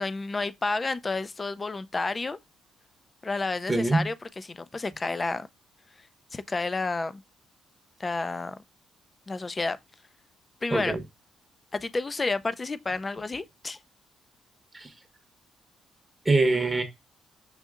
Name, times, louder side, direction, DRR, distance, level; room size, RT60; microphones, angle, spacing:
voice 1, 0.0-2.4 3.2-5.5 6.3-7.2 8.0-8.6 9.3-9.8 10.6-11.0 11.7-13.8, left 3 dB, 25° left, 0.4 m, -30 dB
voice 2, 3.7-4.1 10.7-11.0 14.7-14.9 16.2-16.8, right 2 dB, 20° right, 0.8 m, -24 dB
6.2 x 2.7 x 2.3 m
cardioid pair, 90°, 0 cm